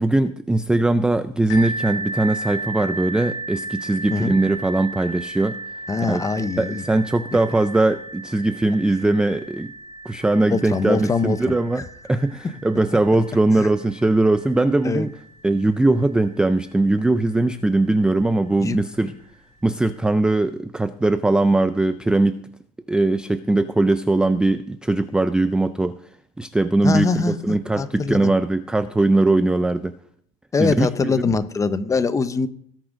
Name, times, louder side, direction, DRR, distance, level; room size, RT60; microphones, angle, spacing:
voice 1, 0.0-5.6 6.0-6.2 6.6-9.7 10.1-15.1 15.4-19.2 19.6-22.4 22.9-26.0 26.4-30.0 30.6-31.3, right 2 dB, 5° right, 12 dB, 0.3 m, -20 dB
sound 1, 1.5-17.0 17.8-17.9 18.5-18.6, right 2 dB, 55° left, 6.1 m, -35 dB
voice 2, 5.9-6.8 10.5-11.4 13.6-13.7 14.8-15.1 18.6-18.8 26.8-28.3 30.5-32.5, left 4 dB, 20° left, 12 dB, 0.8 m, -23 dB
18.5 x 6.2 x 5.1 m, 0.65 s
cardioid pair, 130°, 17 cm